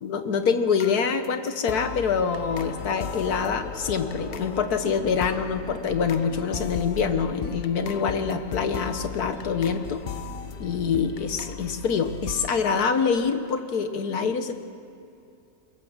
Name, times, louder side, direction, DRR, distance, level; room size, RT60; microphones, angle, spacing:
voice 1, 0.0-10.0 10.6-14.5, left 6 dB, 75° left, 8 dB, 1.7 m, -25 dB
sound 1, 0.8-12.5, left 6 dB, 50° left, 0.7 m, -37 dB
sound 2, 2.4-11.8, left 3 dB, 35° left, 1.7 m, -44 dB
22.0 x 18.5 x 7.3 m, 2.7 s
omnidirectional pair, 1.7 m